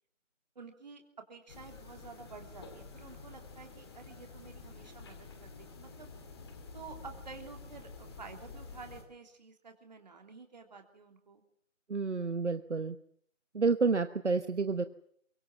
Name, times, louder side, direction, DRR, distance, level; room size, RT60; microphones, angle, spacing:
voice 1, 0.5-1.0 1.3-6.1 6.7-11.4, right 4 dB, 35° right, 4 dB, 3.2 m, -51 dB
sound 1, 1.5-9.0, left 4 dB, 20° left, 2.2 m, -49 dB
voice 2, 11.9-13.0 13.5-14.8, right 4 dB, 65° right, 10 dB, 1.2 m, -29 dB
23.5 x 23.0 x 7.3 m, 0.65 s
figure-of-eight pair, 160°, 38 cm